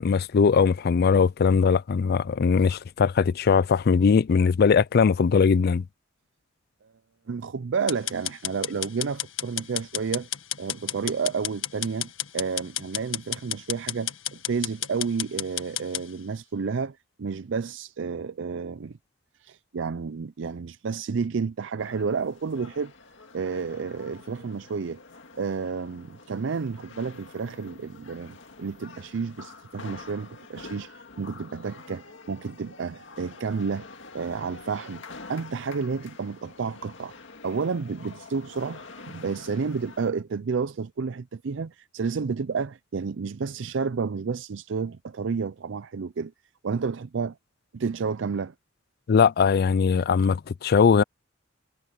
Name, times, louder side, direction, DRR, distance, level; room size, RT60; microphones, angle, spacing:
voice 1, 0.0-5.8 49.1-51.0, left 5 dB, 55° left, 0.4 m, -20 dB
voice 2, 7.3-10.3 10.6-18.9 19.4-22.9 23.3-25.0 25.4-33.9 34.1-35.0 35.3-37.1 37.4-46.3 46.6-47.4 47.7-48.5, right 5 dB, 70° right, 0.5 m, -31 dB
sound 1, 7.9-16.0, left 12 dB, 85° left, 1.7 m, -32 dB
sound 2, 21.8-40.1, left 3 dB, 70° left, 2.1 m, -47 dB
head